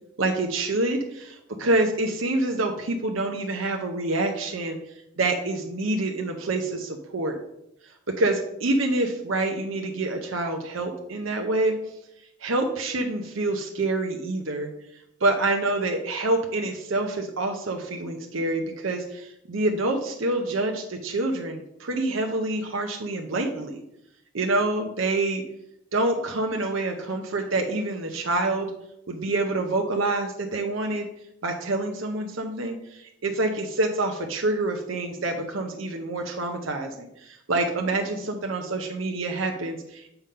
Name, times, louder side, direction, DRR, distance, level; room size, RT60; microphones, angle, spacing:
voice 1, 0.2-4.8 5.2-7.4 7.8-11.7 12.4-14.7 15.2-23.8 24.3-25.4 25.9-28.7 29.1-31.1 31.4-40.1, right 2 dB, 85° right, 3 dB, 0.7 m, -27 dB
6.9 x 3.8 x 5.5 m, 0.80 s
head